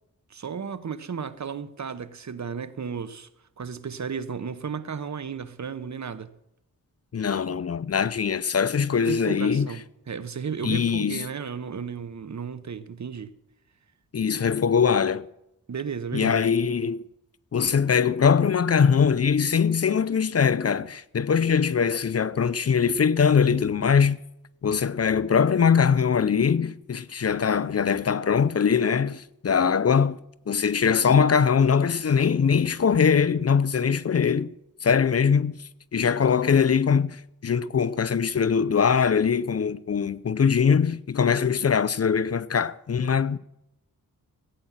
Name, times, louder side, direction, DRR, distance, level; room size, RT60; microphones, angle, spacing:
voice 1, 0.3-3.3 3.6-6.3 9.0-13.3 15.7-16.4, right 6 dB, 55° right, 1.1 m, -34 dB
voice 2, 7.1-9.7 10.6-11.3 14.1-15.2 16.1-17.0 17.5-24.2 24.6-30.2 30.5-34.5 34.8-35.6 35.9-43.4, left 6 dB, 45° left, 0.6 m, -22 dB
16.0 x 9.0 x 7.4 m
wide cardioid pair, 75°, 34 cm